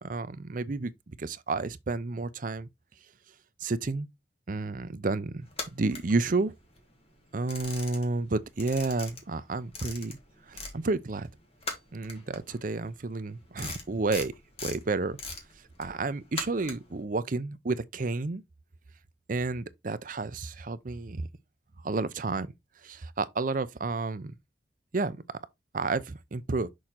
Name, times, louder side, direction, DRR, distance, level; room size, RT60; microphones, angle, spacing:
voice 1, 0.0-2.7 3.6-4.1 4.5-6.5 7.3-10.2 10.5-11.3 11.9-14.3 14.6-15.2 15.8-18.4 19.3-21.3 21.8-22.5 22.8-24.3 24.9-25.2 25.7-26.7, right 3 dB, 45° right, 0.6 m, -31 dB
sound 1, 5.5-6.8 7.1-8.3 8.5-10.8 11.1-17.0, left 3 dB, 35° left, 1.9 m, -40 dB
6.4 x 3.7 x 4.3 m
head